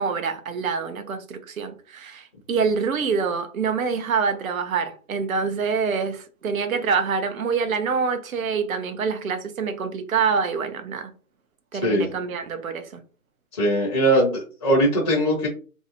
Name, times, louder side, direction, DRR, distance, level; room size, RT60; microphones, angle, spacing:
voice 1, 0.0-11.1 11.7-13.0, right 5 dB, 70° right, 0.7 m, -26 dB
voice 2, 13.5-15.5, right 1 dB, 20° left, 0.6 m, -20 dB
2.6 x 2.1 x 2.8 m
hypercardioid pair, 160°, 44 cm